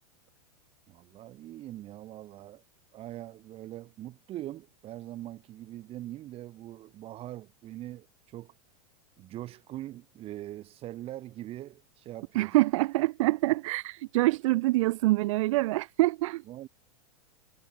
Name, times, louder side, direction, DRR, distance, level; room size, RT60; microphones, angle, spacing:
voice 1, 0.9-2.6 2.9-8.5 9.2-12.6 16.5-16.7, right 14 dB, 30° right, 5.7 m, -42 dB
voice 2, 12.3-16.4, right 19 dB, 60° right, 0.4 m, -25 dB
supercardioid pair, 145°, 18 cm